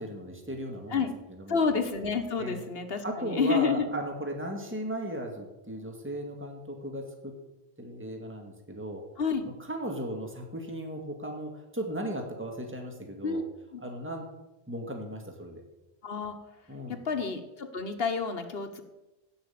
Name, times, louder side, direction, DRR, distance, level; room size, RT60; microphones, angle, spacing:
voice 1, 0.0-1.6 2.4-2.6 3.0-7.3 7.8-9.1 9.5-13.4 13.8-14.3 14.7-15.6 16.7-17.0, right 1 dB, 10° right, 2 dB, 2.0 m, -36 dB
voice 2, 1.5-3.9 9.2-9.5 13.2-13.4 13.7-13.8 16.0-16.4 16.9-18.8, left 5 dB, 70° left, 7 dB, 1.5 m, -29 dB
16.5 x 5.7 x 8.6 m, 1.0 s
omnidirectional pair, 1.0 m